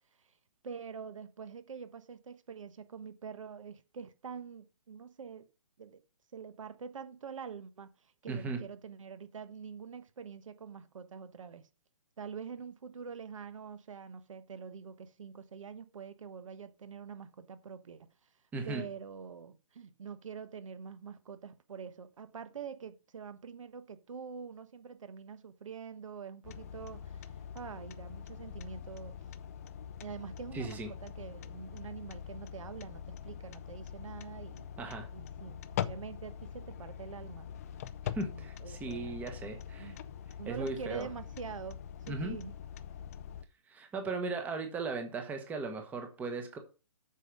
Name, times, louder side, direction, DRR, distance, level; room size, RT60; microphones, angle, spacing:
voice 1, 0.6-5.5 5.8-6.0 6.3-11.7 12.2-18.3 18.6-29.2 30.0-34.8 35.1-37.5 38.3-39.2 39.8-40.0 40.4-42.5, right 6 dB, 60° right, 1.2 m, -45 dB
voice 2, 8.3-8.6 18.5-18.8 30.5-30.9 34.8-35.1 38.1-39.9 40.5-41.1 42.1-42.4 43.7-46.6, right 3 dB, 10° right, 1.1 m, -37 dB
sound 1, 26.4-43.5, left 9 dB, 25° left, 0.4 m, -43 dB
8.3 x 5.7 x 5.2 m
hypercardioid pair, 150°, 18 cm